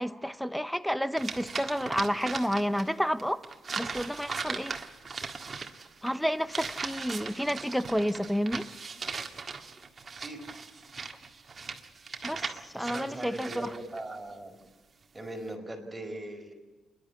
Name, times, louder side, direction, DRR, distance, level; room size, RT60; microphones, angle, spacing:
voice 1, 0.0-3.4 3.8-4.8 6.0-8.7 12.2-13.7, equal, ahead, 14 dB, 0.9 m, -30 dB
sound 1, 1.2-2.9 3.2-14.0, right 4 dB, 35° right, 1.8 m, -39 dB
voice 2, 12.7-14.5 15.1-16.5, right 1 dB, 15° right, 1 dB, 5.0 m, -40 dB
27.5 x 11.5 x 9.8 m, 1.2 s
cardioid pair, 90°, 0 cm